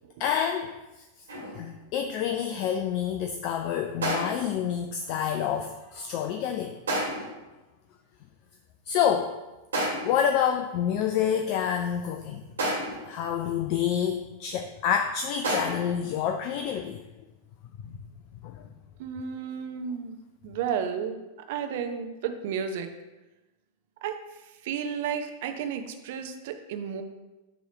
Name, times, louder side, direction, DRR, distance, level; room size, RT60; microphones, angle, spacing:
voice 1, 0.2-0.7 1.6-6.8 8.9-9.4 10.0-12.4 13.0-17.0 18.4-18.6, left 8 dB, 45° left, 5 dB, 0.4 m, -28 dB
sound 1, 1.3-1.7 4.0-4.6 6.9-7.4 9.7-10.3 12.6-13.2 15.4-16.0, right 1 dB, 70° right, 1.6 m, -30 dB
voice 2, 19.0-20.2 20.4-21.2 21.5-22.9 24.0-24.2 24.6-27.0, right 7 dB, 50° right, 6 dB, 0.6 m, -32 dB
6.9 x 3.1 x 4.9 m, 1.1 s
figure-of-eight pair, 90°, 0 cm